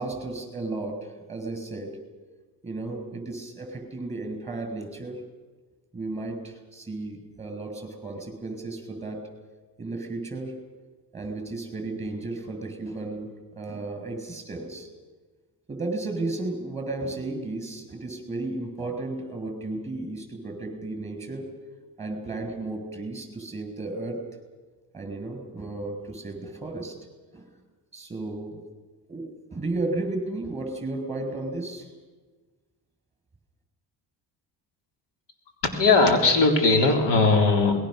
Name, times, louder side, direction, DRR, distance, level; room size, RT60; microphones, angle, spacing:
voice 1, 0.0-1.9 2.6-5.2 5.9-9.2 9.8-10.5 11.1-13.3 13.6-14.9 15.7-21.5 22.0-24.2 24.9-26.9 27.3-27.5 27.9-28.6 29.1-29.2 29.5-31.9, right 2 dB, 15° right, 5 dB, 6.5 m, -33 dB
voice 2, 35.6-37.8, left 3 dB, 75° left, 3 dB, 3.9 m, -19 dB
27.0 x 21.0 x 6.6 m, 1.3 s
cardioid pair, 105°, 42 cm